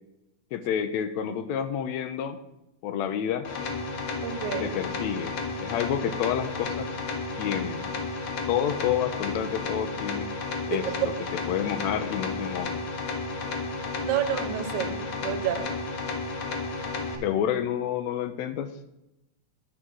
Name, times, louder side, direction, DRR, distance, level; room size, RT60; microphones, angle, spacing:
voice 1, 0.5-2.4 2.8-3.5 4.6-5.3 5.6-6.9 7.4-7.9 8.5-10.3 10.7-10.9 11.3-12.8 17.2-18.7, left 9 dB, 80° left, 10 dB, 1.7 m, -29 dB
sound 1, 3.4-17.2, left 3 dB, 60° left, 1.4 m, -32 dB
voice 2, 4.2-4.7 10.8-10.9 14.0-15.7, right 10 dB, 85° right, 9 dB, 2.2 m, -30 dB
11.0 x 3.8 x 6.2 m, 0.91 s
omnidirectional pair, 3.4 m